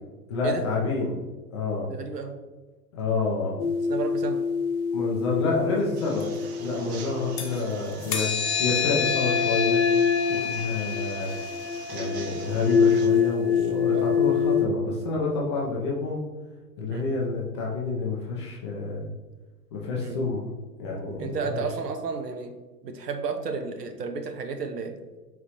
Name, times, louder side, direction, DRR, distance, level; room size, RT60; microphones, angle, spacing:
voice 1, 0.3-1.2 1.5-1.9 2.9-3.6 4.9-6.3 6.6-8.3 8.6-9.8 10.3-11.4 11.9-16.2 16.8-19.1 19.7-20.5 20.8-21.6, left 3 dB, 20° left, -3 dB, 0.3 m, -28 dB
voice 2, 1.9-2.4 3.9-4.4 5.8-6.0 6.6-6.8 10.3-10.5 13.9-14.1 16.9-17.0 20.0-20.2 21.2-22.5 22.8-24.9, right 5 dB, 80° right, 6 dB, 0.8 m, -32 dB
sound 1, 3.6-7.6 8.0-14.7, left 6 dB, 65° left, 1.0 m, -25 dB
sound 2, 6.0-13.1, right 5 dB, 45° right, 0.8 m, -44 dB
4.5 x 3.8 x 2.8 m, 1.2 s
figure-of-eight pair, 100°, 48 cm